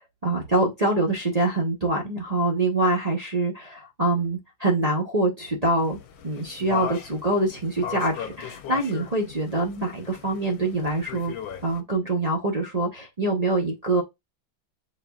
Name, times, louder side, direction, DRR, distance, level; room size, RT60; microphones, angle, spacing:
voice 1, 0.2-6.0 6.2-11.3 11.6-14.0, right 2 dB, 45° right, 0.4 m, -25 dB
sound 1, 5.8-11.8, left 8 dB, 80° left, 1.3 m, -38 dB
7.1 x 2.7 x 2.3 m
omnidirectional pair, 2.1 m